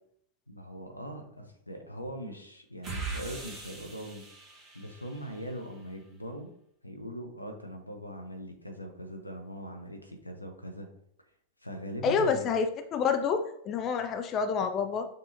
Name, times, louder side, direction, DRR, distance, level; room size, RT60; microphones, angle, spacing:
voice 1, 0.5-4.2 4.7-6.5 6.8-10.9 11.6-12.5, equal, 85° left, 5 dB, 0.6 m, -41 dB
sound 1, 2.8-5.6, right 4 dB, 30° right, 1.1 m, -41 dB
voice 2, 12.0-15.1, left 6 dB, 30° left, 7 dB, 0.3 m, -28 dB
6.5 x 2.8 x 2.6 m, 0.71 s
figure-of-eight pair, 90°, 0 cm